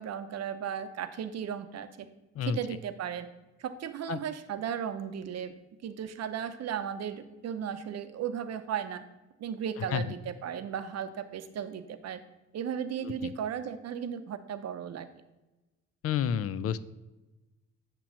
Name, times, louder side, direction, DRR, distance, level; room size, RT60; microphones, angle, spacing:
voice 1, 0.0-2.1 2.4-3.3 3.6-5.5 5.8-9.0 9.4-12.2 12.5-15.1, right 8 dB, 55° right, 10 dB, 0.7 m, -35 dB
voice 2, 16.0-16.8, left 8 dB, 50° left, 15 dB, 0.4 m, -30 dB
8.4 x 3.0 x 6.2 m, 1.1 s
cardioid pair, 90°, 30 cm